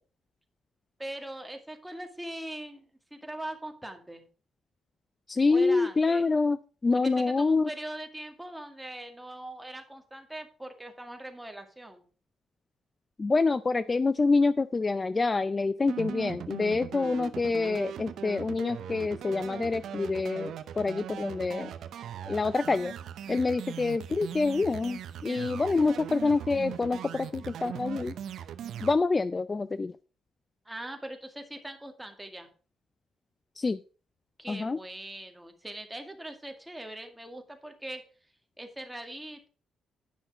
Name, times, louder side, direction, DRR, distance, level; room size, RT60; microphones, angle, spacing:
voice 1, 1.0-4.2 5.5-6.3 7.0-12.0 23.3-23.6 30.7-32.5 34.4-38.0 38.6-39.5, right 1 dB, 5° right, 5 dB, 2.1 m, -41 dB
voice 2, 5.3-7.7 13.2-21.7 22.3-22.9 23.3-28.1 28.8-29.9 33.6-33.8 34.5-34.8, left 3 dB, 25° left, 15 dB, 0.4 m, -27 dB
sound 1, 15.9-29.0, right 9 dB, 70° right, 0.8 m, -40 dB
10.5 x 6.0 x 5.0 m, 0.37 s
cardioid pair, 90°, 0 cm